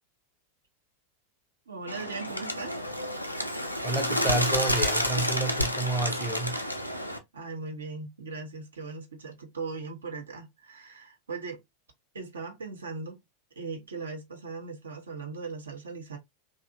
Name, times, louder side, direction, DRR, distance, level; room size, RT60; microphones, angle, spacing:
voice 1, 1.7-2.8 7.3-11.6 12.1-13.2 13.6-16.2, right 4 dB, 70° right, 0.8 m, -39 dB
Bird, 1.9-7.2, equal, 90° left, 0.4 m, -29 dB
voice 2, 3.8-6.6, right 2 dB, 5° right, 0.6 m, -30 dB
2.7 x 2.4 x 2.5 m
figure-of-eight pair, 90°, 0 cm